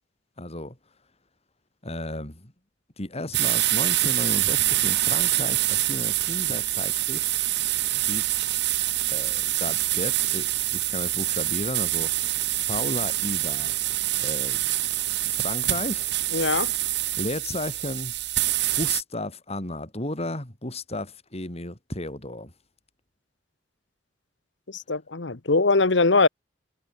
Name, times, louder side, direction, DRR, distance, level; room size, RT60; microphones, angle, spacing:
voice 1, 0.4-0.8 1.8-2.5 3.0-7.3 8.1-8.4 9.1-12.3 12.7-13.7 14.2-14.6 15.2-16.1 17.2-18.1 18.7-22.5, left 1 dB, 35° left, 4.7 m, -34 dB
sound 1, 3.3-19.0, right 15 dB, 65° right, 1.5 m, -25 dB
voice 2, 16.3-16.7 24.7-26.3, left 3 dB, 75° left, 1.3 m, -21 dB
head